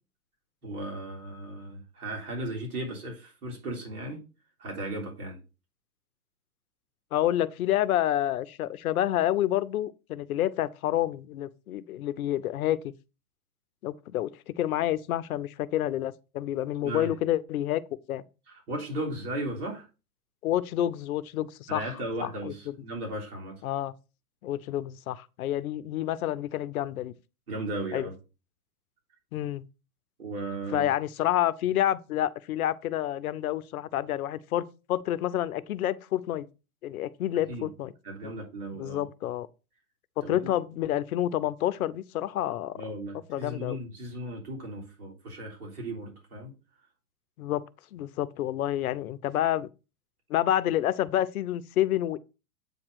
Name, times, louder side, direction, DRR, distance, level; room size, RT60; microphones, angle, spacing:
voice 1, 0.6-4.2 4.6-5.4 16.8-17.1 18.5-19.9 21.7-23.6 27.5-28.2 30.2-30.9 37.5-37.7 38.0-39.0 40.2-40.5 42.7-46.5, right 1 dB, 80° right, 3.4 m, -36 dB
voice 2, 7.1-12.9 13.8-17.8 18.1-18.2 20.4-21.8 22.2-22.7 23.6-23.9 24.4-27.1 27.9-28.1 29.3-29.6 30.7-36.5 36.8-37.9 38.2-38.3 38.7-39.5 40.2-42.8 43.3-43.8 47.4-47.6 47.9-49.7 50.3-52.2, left 12 dB, 70° left, 0.7 m, -28 dB
8.4 x 2.9 x 6.2 m
hypercardioid pair, 120°, 45 cm